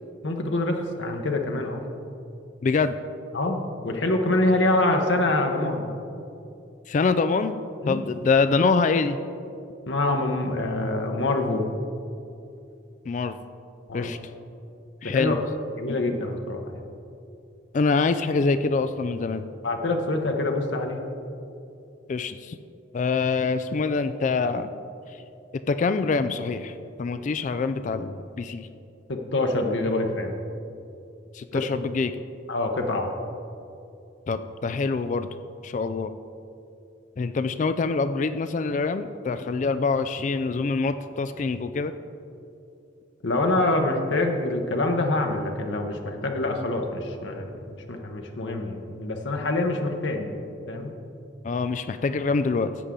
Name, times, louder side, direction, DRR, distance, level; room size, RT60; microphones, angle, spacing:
voice 1, 0.2-1.8 3.3-5.9 7.8-8.0 9.9-11.7 13.9-14.1 15.0-15.3 15.8-16.8 19.6-21.0 29.1-30.3 31.5-31.6 32.5-33.1 43.2-50.9, left 2 dB, 85° left, 3 dB, 1.0 m, -25 dB
voice 2, 2.6-3.0 6.9-7.6 7.9-9.2 13.1-13.4 13.9-14.2 15.0-15.4 15.9-16.0 17.7-19.4 22.1-22.6 22.9-24.7 25.7-28.7 31.3-32.2 34.3-35.3 35.6-36.1 37.2-41.9 51.4-52.7, left 4 dB, 40° left, 11 dB, 0.3 m, -25 dB
13.5 x 8.4 x 3.7 m, 2.7 s
head